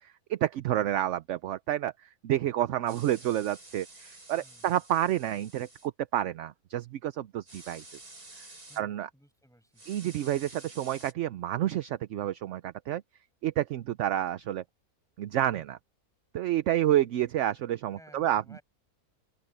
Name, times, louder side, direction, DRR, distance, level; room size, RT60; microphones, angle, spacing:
voice 1, 0.0-1.9 2.2-7.8 8.8-9.1 9.9-13.0 13.4-14.6 15.2-15.8 16.3-18.4, right 12 dB, 65° right, 0.8 m, -29 dB
sound 1, 2.9-5.9 7.5-8.8 9.8-11.1, right 2 dB, 85° right, 7.1 m, -50 dB
voice 2, 4.4-4.8 8.7-9.8 17.9-18.6, equal, ahead, 7.2 m, -56 dB
open air
omnidirectional pair, 1.6 m